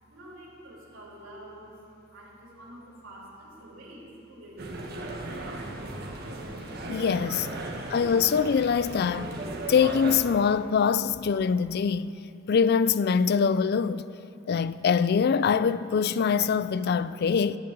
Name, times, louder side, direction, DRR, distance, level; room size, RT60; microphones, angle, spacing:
voice 1, 0.0-5.7, right 1 dB, 80° right, 3.4 m, -48 dB
sound 1, 4.6-10.2, right 2 dB, 50° right, 1.6 m, -36 dB
voice 2, 6.9-7.5 7.9-9.3 9.7-12.1 12.5-14.0 14.5-17.6, left 6 dB, 50° left, 0.3 m, -24 dB
12.0 x 10.5 x 7.4 m
head